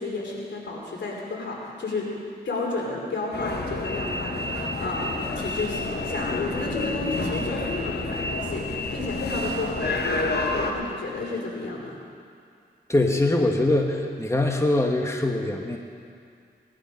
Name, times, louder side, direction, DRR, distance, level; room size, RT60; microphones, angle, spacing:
voice 1, 0.0-2.1 2.4-10.0 10.6-11.9, left 3 dB, 85° left, -2 dB, 3.2 m, -32 dB
sound 1, 3.3-10.7, left 2 dB, 65° left, 1.4 m, -29 dB
voice 2, 12.9-15.8, left 2 dB, 15° left, 2 dB, 1.4 m, -23 dB
18.5 x 11.5 x 5.3 m, 2.3 s
cardioid pair, 60°, 18 cm